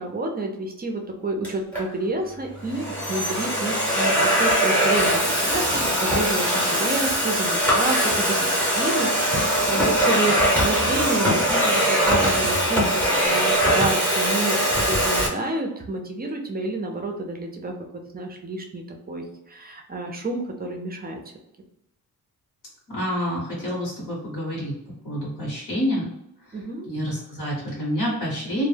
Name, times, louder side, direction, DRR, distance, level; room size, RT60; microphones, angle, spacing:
voice 1, 0.0-21.2 26.5-26.9, right 2 dB, 25° right, 2 dB, 0.5 m, -29 dB
Domestic sounds home sounds, 1.4-1.8 2.6-15.3, equal, 5° left, 0.7 m, -21 dB
voice 2, 22.9-24.8 25.0-26.1 26.4-28.7, equal, 60° left, -7 dB, 1.0 m, -28 dB
2.1 x 2.1 x 3.2 m, 0.81 s
cardioid pair, 95°, 37 cm